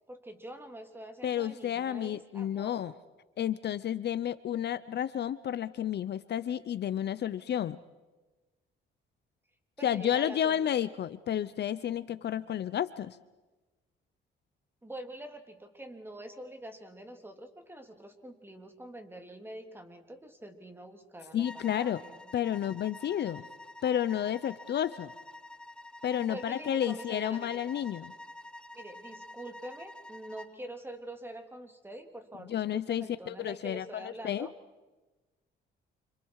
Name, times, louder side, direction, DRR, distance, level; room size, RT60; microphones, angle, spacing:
voice 1, 0.1-2.9 9.8-10.7 14.8-22.2 26.2-27.6 28.7-34.5, right 1 dB, 10° right, 5 dB, 3.2 m, -45 dB
voice 2, 1.2-2.9 3.4-7.8 9.8-13.2 21.3-22.0 22.3-23.5 23.8-25.1 26.0-28.1 32.5-34.5, left 10 dB, 60° left, 16 dB, 0.8 m, -31 dB
sound 1, 21.4-30.6, left 1 dB, 5° left, 0.8 m, -48 dB
29.5 x 27.0 x 4.9 m, 1.2 s
cardioid pair, 90°, 20 cm